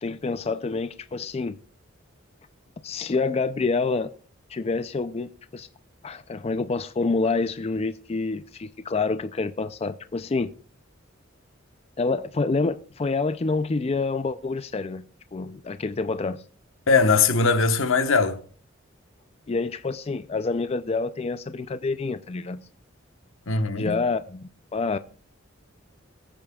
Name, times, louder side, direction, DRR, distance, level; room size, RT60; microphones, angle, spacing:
voice 1, 0.0-1.6 2.8-4.1 4.5-5.7 6.0-10.5 12.0-15.0 15.3-16.4 19.5-22.6 23.8-25.0, left 3 dB, 30° left, 0.4 m, -27 dB
voice 2, 16.9-18.4 23.5-24.0, left 4 dB, 80° left, 1.1 m, -20 dB
22.0 x 8.9 x 2.3 m
head